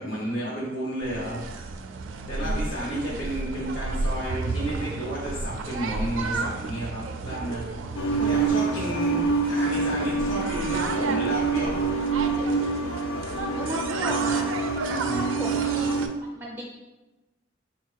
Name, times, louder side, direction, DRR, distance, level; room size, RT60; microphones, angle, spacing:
voice 1, 0.0-1.4 2.3-9.2 9.5-11.9 14.8-15.5, right 1 dB, 65° left, -8 dB, 1.1 m, -32 dB
sound 1, 1.0-16.1, right 3 dB, 85° right, 0.4 m, -33 dB
voice 2, 2.4-3.2 13.5-14.7 15.1-16.0 16.3-16.6, equal, 10° right, -3 dB, 0.5 m, -35 dB
sound 2, 8.0-16.1, right 4 dB, 85° left, 0.4 m, -26 dB
4.8 x 2.3 x 4.0 m, 1.1 s
head